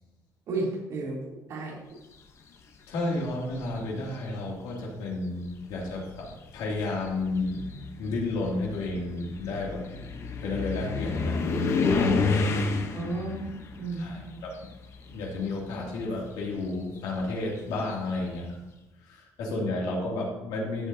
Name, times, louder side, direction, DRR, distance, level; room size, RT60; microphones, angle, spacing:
voice 1, 0.5-1.2 1.5-1.7 12.9-13.5 13.8-14.4, right 2 dB, 50° right, -5 dB, 3.1 m, -32 dB
voice 2, 2.9-7.7 8.0-10.1 10.4-11.4 11.9-12.4 14.0-14.7 15.0-18.5 19.0-20.9, left 2 dB, 85° left, -3 dB, 2.6 m, -32 dB
sound 1, 3.3-3.8 4.8-4.9 5.5-15.4 15.7-18.3, left 4 dB, 40° left, 0.9 m, -31 dB
13.5 x 7.7 x 2.8 m, 0.99 s
cardioid pair, 165°, 7 cm